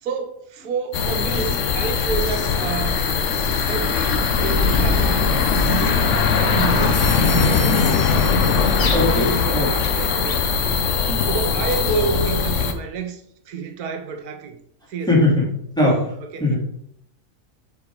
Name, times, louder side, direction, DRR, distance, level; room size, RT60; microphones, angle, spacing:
voice 1, 0.0-3.0 3.7-5.2 5.6-8.0 8.8-14.6 14.9-15.1 15.4-15.5 16.3-16.5, right 6 dB, 85° right, 1.3 m, -30 dB
sound 1, 0.9-12.7, left 5 dB, 60° left, 1.1 m, -20 dB
sound 2, 4.4-4.6 4.8-4.9 6.7-9.9, left 4 dB, 35° left, 1.2 m, -33 dB
voice 2, 8.9-9.7 10.5-10.6 11.0-11.3 15.1-15.5 15.8-16.1 16.4-16.6, left 1 dB, 5° left, 2.6 m, -20 dB
7.3 x 4.6 x 4.8 m
omnidirectional pair, 1.5 m